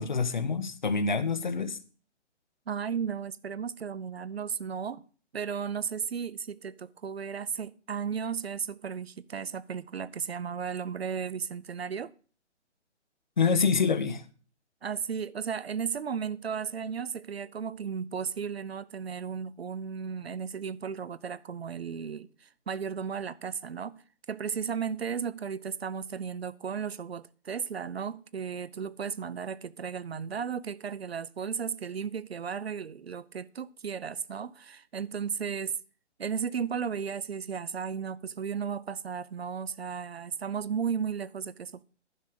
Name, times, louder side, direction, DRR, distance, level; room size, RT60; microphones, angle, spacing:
voice 1, 0.0-1.8 13.4-14.2, left 5 dB, 40° left, 1.0 m, -26 dB
voice 2, 2.7-5.0 5.3-12.1 14.8-24.0 24.3-35.8 36.2-41.8, right 7 dB, 60° right, 0.6 m, -34 dB
11.0 x 6.4 x 6.7 m
hypercardioid pair, 175°, 36 cm